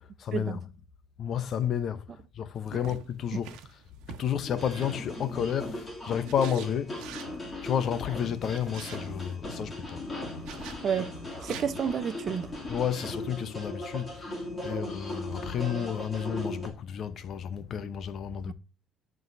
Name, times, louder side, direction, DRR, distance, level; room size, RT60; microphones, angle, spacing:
voice 1, 0.2-0.6 1.2-2.0 2.3-3.5 4.2-7.0 7.6-10.0 12.7-18.5, left 8 dB, 45° left, 0.8 m, -31 dB
sound 1, 2.8-5.8 6.3-7.4 8.4-9.0 10.4-10.8 11.3-11.7, right 9 dB, 85° right, 1.2 m, -45 dB
sound 2, 4.5-16.7, left 1 dB, 20° left, 2.6 m, -38 dB
voice 2, 11.4-12.5 18.5-18.6, right 7 dB, 40° right, 0.7 m, -30 dB
14.5 x 4.8 x 2.6 m
cardioid pair, 145°, 0 cm